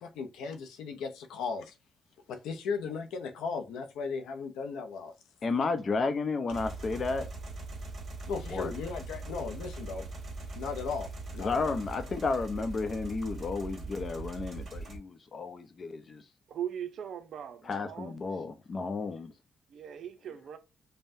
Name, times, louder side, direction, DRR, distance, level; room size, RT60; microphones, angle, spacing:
voice 1, 0.0-1.7 2.3-5.1 8.3-10.1 10.5-11.1 11.3-11.7, left 5 dB, 85° left, 0.6 m, -36 dB
voice 2, 5.4-7.3 8.5-8.7 11.4-16.2 17.7-19.3, left 4 dB, 40° left, 0.6 m, -32 dB
sound 1, 6.5-15.0, right 3 dB, 45° right, 1.5 m, -41 dB
voice 3, 16.5-18.4 19.7-20.6, right 9 dB, 65° right, 0.6 m, -40 dB
5.4 x 2.1 x 2.6 m
cardioid pair, 90°, 0 cm